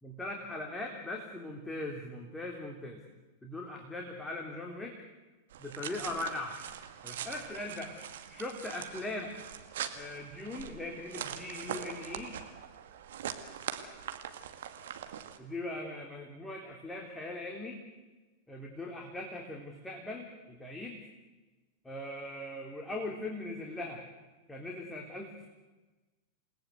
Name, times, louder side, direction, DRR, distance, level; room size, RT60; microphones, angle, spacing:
voice 1, 0.0-3.0 3.4-4.9 5.6-6.6 7.0-8.0 8.3-9.3 9.9-12.3 15.4-17.8 18.5-21.0 21.9-24.0 24.5-25.5, left 2 dB, 10° left, 1 dB, 3.4 m, -40 dB
sound 1, 5.5-15.4, right 9 dB, 60° right, 2.2 m, -42 dB
29.0 x 19.5 x 8.1 m, 1.2 s
figure-of-eight pair, 90°, 0 cm